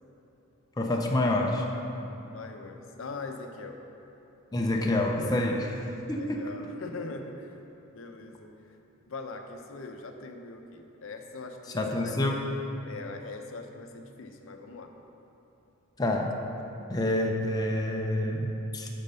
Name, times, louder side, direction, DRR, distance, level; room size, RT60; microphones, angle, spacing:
voice 1, 0.8-1.7 4.5-5.8 6.1-6.5 11.7-12.4 16.0-16.3 16.9-18.9, left 1 dB, 20° left, 1 dB, 0.5 m, -27 dB
voice 2, 2.2-3.8 6.1-7.6 7.9-8.5 9.1-12.1 12.9-14.9, left 3 dB, 65° left, 5 dB, 0.6 m, -41 dB
9.0 x 4.2 x 6.7 m, 2.9 s
head